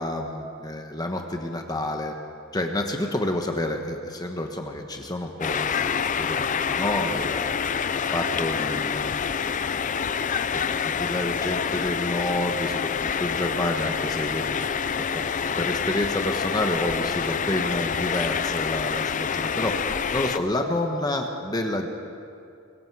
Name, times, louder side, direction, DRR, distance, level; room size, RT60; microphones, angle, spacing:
voice 1, 0.0-2.1 2.5-7.5 7.9-9.3 10.5-14.5 15.1-15.2 15.6-19.8 20.1-21.9, left 1 dB, 20° left, 3 dB, 1.2 m, -29 dB
sound 1, 5.4-20.4, left 6 dB, 40° left, 0.5 m, -27 dB
24.0 x 22.5 x 4.8 m, 2.5 s
head